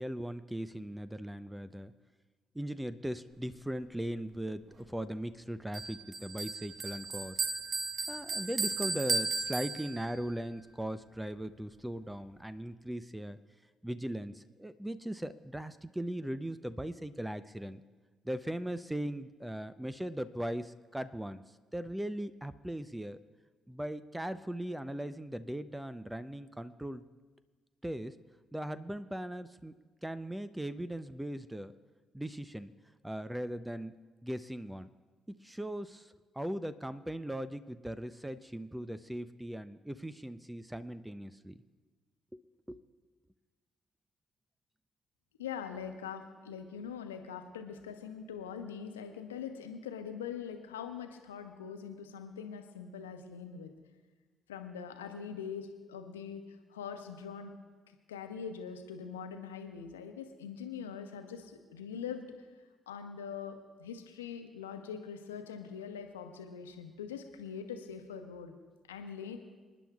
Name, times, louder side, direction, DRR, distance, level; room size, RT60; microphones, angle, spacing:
voice 1, 0.0-1.9 2.5-7.5 8.1-13.4 13.8-17.8 18.2-23.2 23.7-27.1 27.8-28.2 28.5-29.7 30.0-31.7 32.1-32.7 33.0-34.9 35.3-41.6 42.3-42.4 42.7-42.8, right 1 dB, 10° right, 13 dB, 0.6 m, -39 dB
Bell, 5.7-10.2, right 3 dB, 45° right, 1.4 m, -35 dB
voice 2, 45.4-53.7 54.5-57.5 58.1-62.2 62.9-68.5 68.9-69.4, left 7 dB, 85° left, 6 dB, 1.0 m, -43 dB
27.0 x 10.5 x 2.4 m, 1.4 s
figure-of-eight pair, 45°, 0 cm